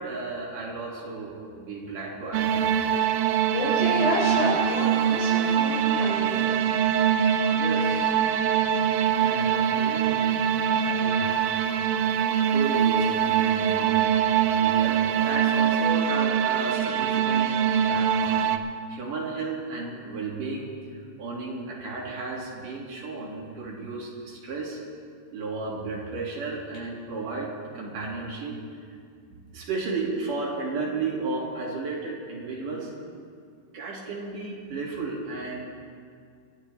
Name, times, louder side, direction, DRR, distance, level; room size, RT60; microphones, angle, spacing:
voice 1, 0.0-2.7 7.5-8.2 9.2-10.4 10.7-11.6 12.5-24.8 25.3-28.6 29.5-32.9 33.7-35.7, right 3 dB, 55° right, -4 dB, 3.4 m, -34 dB
sound 1, 2.3-18.6, right 8 dB, 90° right, 2.0 m, -23 dB
voice 2, 3.5-6.4, left 1 dB, 80° left, -5 dB, 6.6 m, -29 dB
25.5 x 11.5 x 3.3 m, 2.2 s
omnidirectional pair, 4.7 m